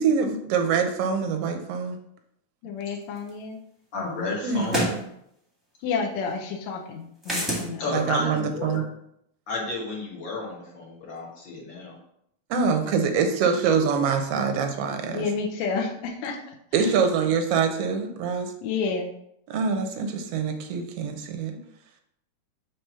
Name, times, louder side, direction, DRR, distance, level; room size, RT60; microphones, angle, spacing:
voice 1, 0.0-2.0 4.4-4.8 7.9-8.8 12.5-15.3 16.7-18.5 19.5-21.6, right 6 dB, 75° right, 6 dB, 1.5 m, -24 dB
voice 2, 2.6-3.6 5.8-8.1 13.0-13.2 15.1-16.9 18.6-19.1, left 5 dB, 75° left, 2 dB, 2.0 m, -30 dB
sound 1, 3.3-3.4 4.7-5.0 7.2-7.7, equal, ahead, 0.8 m, -25 dB
voice 3, 3.9-4.9 7.8-8.8 9.5-12.0, left 3 dB, 50° left, -2 dB, 1.6 m, -32 dB
5.9 x 3.3 x 5.6 m, 0.74 s
omnidirectional pair, 3.3 m